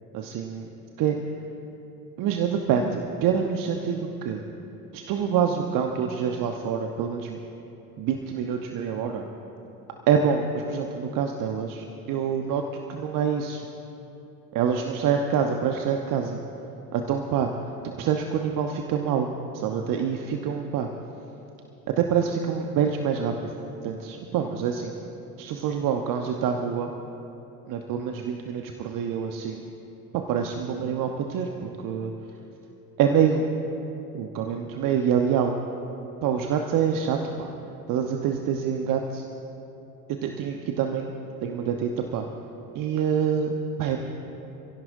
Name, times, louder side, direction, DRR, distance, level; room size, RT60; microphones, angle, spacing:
voice 1, 0.1-0.7 1.0-1.2 2.2-4.4 4.9-7.4 8.0-9.3 10.1-13.7 14.5-16.4 16.9-17.5 18.0-20.9 21.9-23.5 23.8-24.9 25.4-26.9 27.7-29.7 30.1-32.1 33.0-33.4 34.1-35.5 36.2-37.5 37.9-39.2 40.1-41.1 41.4-42.2 42.7-44.0, right 7 dB, 40° right, 4 dB, 1.1 m, -26 dB
28.0 x 16.5 x 2.7 m, 3.0 s
figure-of-eight pair, 65°, 50 cm